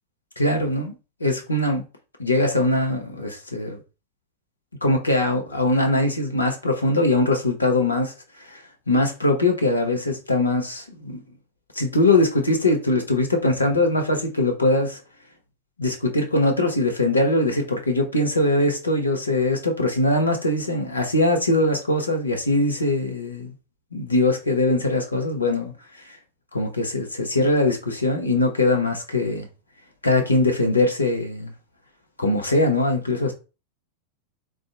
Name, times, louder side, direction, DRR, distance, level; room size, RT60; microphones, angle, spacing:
voice 1, 0.4-0.9 1.2-1.8 2.2-3.8 4.8-8.1 8.4-11.2 11.7-15.0 15.8-23.5 23.9-26.2 26.5-29.5 30.0-31.5 32.2-33.3, left 2 dB, 80° left, 0.6 m, -22 dB
3.7 x 2.3 x 2.4 m
figure-of-eight pair, 90°, 0 cm